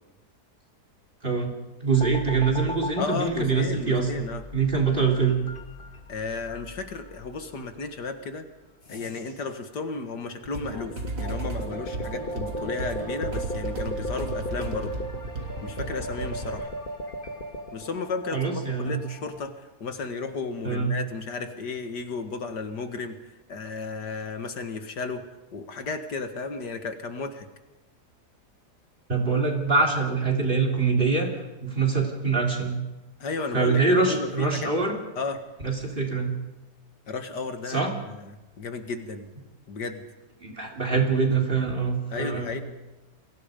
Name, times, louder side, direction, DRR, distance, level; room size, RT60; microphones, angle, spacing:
voice 1, 1.2-1.6 1.8-4.2 4.5-5.4 18.3-19.0 20.6-20.9 29.1-31.3 31.6-32.8 33.5-35.0 35.6-36.4 37.7-37.9 40.4-42.6, right 4 dB, 30° right, 2 dB, 3.8 m, -24 dB
sound 1, 1.9-7.6 8.8-9.6 10.8-19.5, equal, 30° left, 1.7 m, -37 dB
voice 2, 3.0-4.4 6.1-8.5 8.9-15.0 15.6-16.7 17.7-23.2 23.5-25.2 25.5-27.5 33.2-34.7 35.2-35.4 37.1-38.3 38.6-39.3 39.7-40.0 42.1-42.6, left 4 dB, 75° left, 7 dB, 2.3 m, -33 dB
sound 2, 10.4-16.5, right 2 dB, 85° right, 3.9 m, -34 dB
29.5 x 22.0 x 5.2 m, 1.1 s
omnidirectional pair, 1.8 m